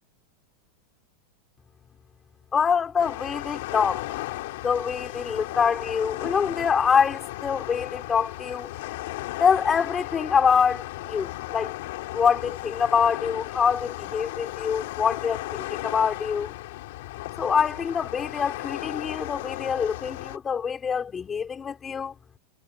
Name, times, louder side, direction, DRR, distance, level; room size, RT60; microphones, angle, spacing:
voice 1, 2.5-4.2 4.6-8.7 9.4-11.7 12.1-16.5 17.4-22.1, left 6 dB, 15° left, 3.6 m, -25 dB
sound 1, 3.0-20.4, left 18 dB, 65° left, 2.4 m, -35 dB
supercardioid pair, 160°, 0 cm